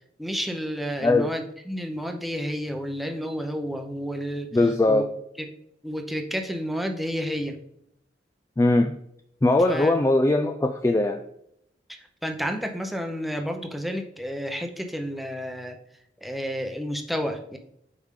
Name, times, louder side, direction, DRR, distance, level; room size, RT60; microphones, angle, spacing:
voice 1, 0.2-5.0 5.4-5.5 5.8-7.6 9.7-10.0 12.2-15.8 16.2-17.6, equal, ahead, 3 dB, 0.7 m, -31 dB
voice 2, 4.5-5.1 8.6-8.9 9.4-11.2, left 2 dB, 15° left, 5 dB, 0.3 m, -20 dB
8.1 x 4.8 x 3.7 m, 0.74 s
head